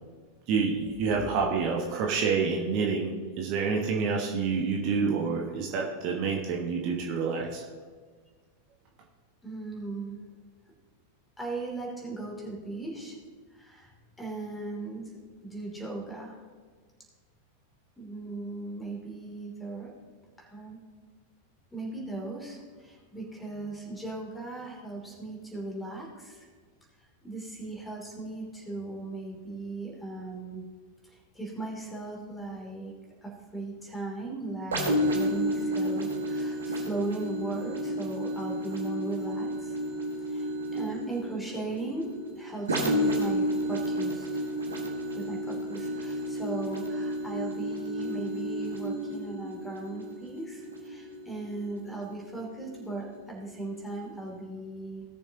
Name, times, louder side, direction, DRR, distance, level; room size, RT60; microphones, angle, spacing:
voice 1, 0.5-7.6, right 5 dB, 40° right, 0 dB, 1.3 m, -28 dB
voice 2, 9.4-10.2 11.4-13.2 13.5-16.4 18.0-19.9 20.4-20.8 21.7-26.5 27.0-30.6 31.0-32.9 33.2-39.8 40.2-44.3 45.1-55.1, right 2 dB, 5° left, -1 dB, 3.0 m, -38 dB
sound 1, 34.7-52.2 52.8-52.9, equal, 70° right, 1.7 m, -31 dB
17.5 x 6.9 x 2.9 m, 1.5 s
figure-of-eight pair, 90°, 0 cm